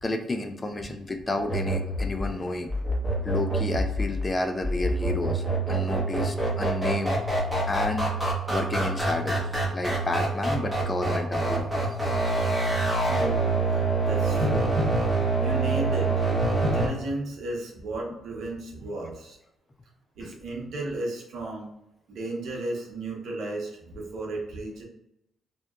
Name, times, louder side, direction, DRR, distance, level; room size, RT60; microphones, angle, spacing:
voice 1, 0.0-2.7 3.2-7.2 7.7-9.5 9.7-11.7 20.2-20.4, left 2 dB, 25° left, 6 dB, 0.3 m, -31 dB
sound 1, 1.5-16.9, right 2 dB, 5° right, 0.8 m, -26 dB
voice 2, 12.1-12.5 13.0-14.7 15.4-16.2 16.5-19.4 20.2-21.7 22.1-24.8, right 2 dB, 70° right, 0 dB, 0.7 m, -35 dB
2.7 x 2.2 x 2.3 m, 0.82 s
cardioid pair, 90°, 0 cm